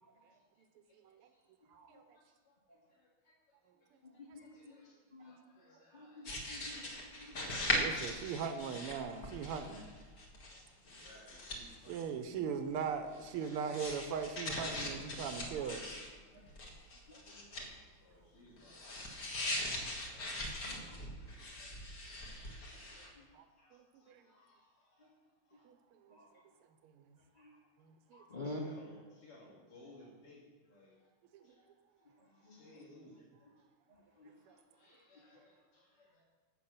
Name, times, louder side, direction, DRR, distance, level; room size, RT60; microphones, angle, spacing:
voice 1, 0.3-1.5 2.1-2.6 2.9-3.3 3.8-3.9 4.4-7.0 10.4-12.2 16.3-17.6 18.0-25.2 25.5-25.7 28.3-31.1 31.4-31.7 32.0-33.3 34.4-36.2, left 1 dB, 80° left, -4 dB, 3.5 m, -63 dB
voice 2, 4.0-4.7 5.1-5.4 5.9-6.9 7.2-7.9 16.3-16.5 17.1-17.7 20.6-21.0 22.5-22.6 22.9-23.2 25.0-25.1 26.1-26.4 27.3-27.6 28.1-28.6 32.2-32.8 33.9-34.4 35.3-35.4, left 2 dB, 20° left, -1 dB, 1.6 m, -51 dB
sound 1, 6.3-10.6 10.9-12.0 13.1-16.1 16.4-17.7 18.6-23.1, left 1 dB, 45° left, 1.9 m, -40 dB
voice 3, 7.7-9.9 11.9-15.9 23.3-23.5 23.7-24.2 25.7-25.8 26.0-26.2 26.8-27.0 27.8-28.2 34.5-34.6, right 6 dB, 85° right, 7 dB, 1.8 m, -39 dB
12.0 x 7.5 x 5.8 m, 1.4 s
omnidirectional pair, 2.4 m